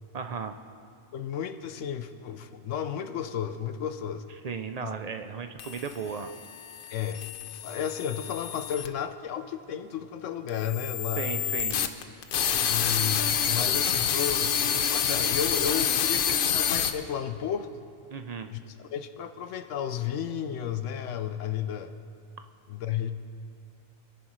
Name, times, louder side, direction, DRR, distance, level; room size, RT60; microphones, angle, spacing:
voice 1, 0.1-0.5 4.4-6.3 11.2-11.8 18.1-18.5, right 6 dB, 60° right, 8 dB, 0.4 m, -35 dB
voice 2, 1.1-4.2 4.8-4.9 6.9-7.3 7.6-11.6 12.6-17.7 18.5-21.9 22.7-23.1, left 9 dB, 80° left, 9 dB, 1.0 m, -33 dB
sound 1, 5.6-8.9 10.5-16.9, left 8 dB, 55° left, 0.7 m, -28 dB
24.5 x 10.5 x 3.1 m, 2.4 s
omnidirectional pair, 1.3 m